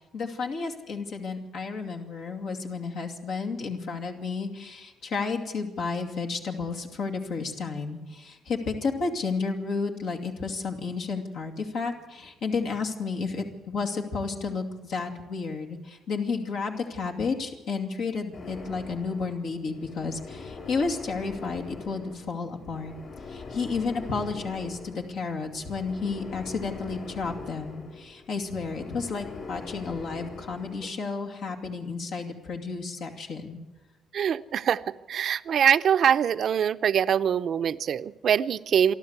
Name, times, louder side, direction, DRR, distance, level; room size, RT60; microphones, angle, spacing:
voice 1, 0.1-22.9 23.3-33.6, left 4 dB, 75° left, 2 dB, 2.5 m, -32 dB
sound 1, 18.3-30.9, left 4 dB, 45° left, 6.3 m, -42 dB
voice 2, 34.1-39.0, right 8 dB, 60° right, 12 dB, 0.6 m, -24 dB
28.0 x 12.0 x 8.1 m, 1.1 s
cardioid pair, 90°, 0 cm